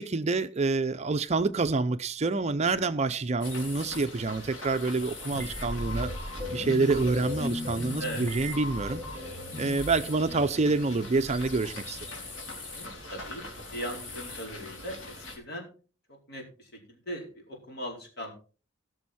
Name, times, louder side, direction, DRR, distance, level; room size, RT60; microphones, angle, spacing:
voice 1, 0.0-6.1 6.5-9.0 9.6-12.0, right 3 dB, 35° right, 0.5 m, -27 dB
sound 1, 3.4-15.4, left 2 dB, 75° left, 3.6 m, -42 dB
sound 2, 5.3-12.2, left 1 dB, 15° left, 1.6 m, -37 dB
voice 2, 12.6-13.4 13.7-15.7 16.3-18.3, equal, 55° left, 4.5 m, -39 dB
18.5 x 6.3 x 4.2 m
head